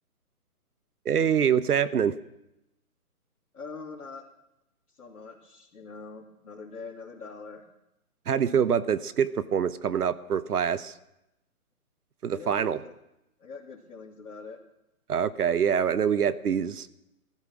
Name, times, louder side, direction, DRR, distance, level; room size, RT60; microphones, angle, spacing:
voice 1, 1.0-2.2 8.3-10.9 12.2-12.8 15.1-16.9, right 8 dB, 85° right, 15 dB, 1.0 m, -25 dB
voice 2, 3.5-4.2 4.9-7.7 12.3-12.9 13.4-14.6, left 4 dB, 75° left, -7 dB, 3.0 m, -43 dB
15.5 x 12.5 x 6.1 m, 0.89 s
hypercardioid pair, 175°, 44 cm